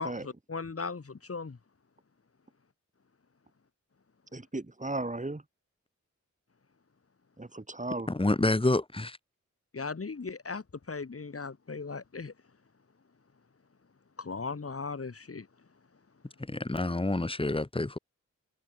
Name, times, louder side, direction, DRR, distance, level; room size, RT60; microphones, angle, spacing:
voice 1, 0.0-1.6 9.7-12.3 14.2-15.5, left 4 dB, 50° left, 3.0 m, -37 dB
voice 2, 4.3-5.4 7.4-8.1, right 2 dB, 25° right, 5.5 m, -36 dB
voice 3, 8.1-9.2 16.5-18.0, left 2 dB, 20° left, 2.0 m, -28 dB
wide cardioid pair, 85°, 29 cm